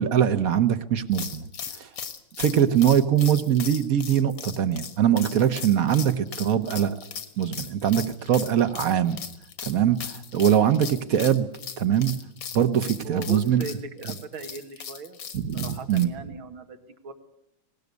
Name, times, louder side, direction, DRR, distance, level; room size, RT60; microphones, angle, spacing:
voice 1, 0.0-1.5 1.8-1.9 2.4-6.9 7.4-9.2 9.6-11.5 11.8-12.1 12.5-13.6 15.3-16.1, right 9 dB, 55° right, 12 dB, 1.2 m, -22 dB
sound 1, 1.1-16.0, left 7 dB, 75° left, 2.3 m, -38 dB
voice 2, 13.0-15.2 15.5-17.1, right 4 dB, 90° right, 8 dB, 2.4 m, -38 dB
19.0 x 18.5 x 8.2 m, 0.82 s
omnidirectional pair, 2.2 m